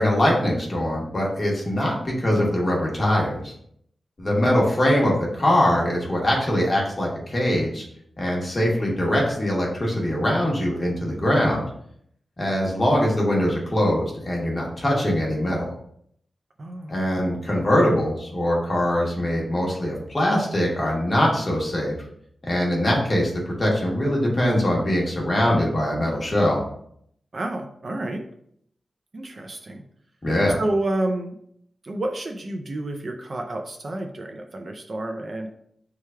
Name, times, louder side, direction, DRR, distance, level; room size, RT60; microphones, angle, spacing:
voice 1, 0.0-3.5 4.2-7.8 8.2-11.6 12.4-15.7 16.9-22.0 22.4-26.6 30.2-30.6, left 1 dB, 30° left, -3 dB, 1.0 m, -22 dB
voice 2, 16.6-17.0 27.3-28.3 29.1-29.8 30.6-31.4 31.8-35.5, right 1 dB, 40° right, 4 dB, 0.3 m, -29 dB
3.1 x 2.3 x 4.2 m, 0.68 s
wide cardioid pair, 160°, 0 cm